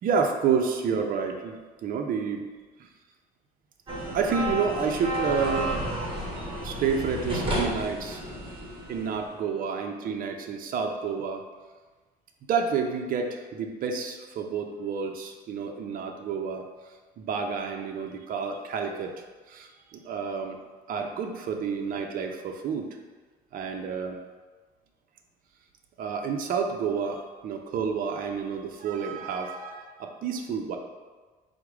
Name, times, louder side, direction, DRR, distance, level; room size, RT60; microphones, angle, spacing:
voice 1, 0.0-2.5 2.8-2.9 4.1-5.8 6.2-8.2 8.9-11.5 12.5-16.6 17.2-19.1 19.5-20.6 20.9-22.9 23.5-24.2 26.0-30.8, right 6 dB, 55° right, 4 dB, 0.5 m, -29 dB
sound 1, 3.9-9.3, right 1 dB, 30° right, 1.1 m, -32 dB
4.7 x 2.1 x 4.6 m, 1.3 s
cardioid pair, 110°, 17 cm